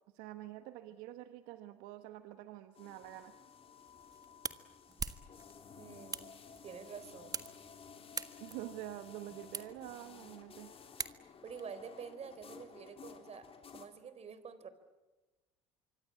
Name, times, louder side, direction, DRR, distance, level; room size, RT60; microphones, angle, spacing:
voice 1, 0.1-3.3 8.4-10.7, right 14 dB, 75° right, 10 dB, 1.4 m, -47 dB
sound 1, 2.7-13.9, left 6 dB, 35° left, 3.5 m, -55 dB
sound 2, 3.8-11.6, right 4 dB, 25° right, 1.6 m, -46 dB
voice 2, 5.7-6.3 6.6-7.4 11.4-14.7, right 6 dB, 40° right, 12 dB, 3.9 m, -48 dB
25.5 x 24.5 x 8.6 m, 1.1 s
hypercardioid pair, 80°, 16 cm